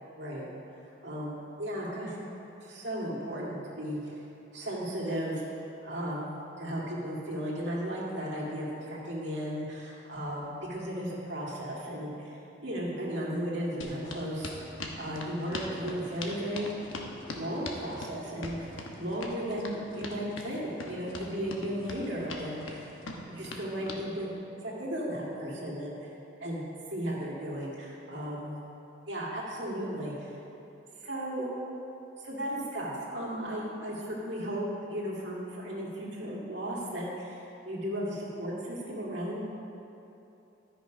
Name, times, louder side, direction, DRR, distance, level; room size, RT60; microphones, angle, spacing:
voice 1, 0.2-0.5 1.0-2.2 2.6-4.2 4.5-5.4 5.8-16.8 17.3-22.9 23.3-24.3 24.6-26.1 26.4-28.6 29.1-30.3 31.0-31.5 32.2-39.4, equal, 65° right, -5 dB, 2.1 m, -35 dB
sound 1, 13.8-24.0, left 2 dB, 85° left, 1.0 m, -41 dB
12.5 x 5.9 x 5.1 m, 2.9 s
head